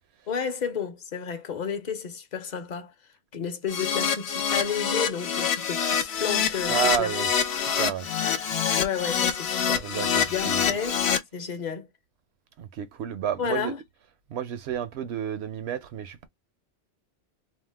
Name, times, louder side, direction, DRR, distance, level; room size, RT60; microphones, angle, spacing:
voice 1, 0.3-2.9 3.3-7.1 8.8-9.9 10.3-11.0 11.3-11.9 13.4-13.8, left 7 dB, 50° left, 0.7 m, -31 dB
Keyboard (musical), 3.7-11.2, left 7 dB, 85° left, 0.9 m, -26 dB
voice 2, 6.7-7.3 7.8-8.1 9.8-10.6 12.6-13.7 14.3-16.3, right 9 dB, 85° right, 0.9 m, -30 dB
2.8 x 2.0 x 3.2 m
omnidirectional pair, 1.1 m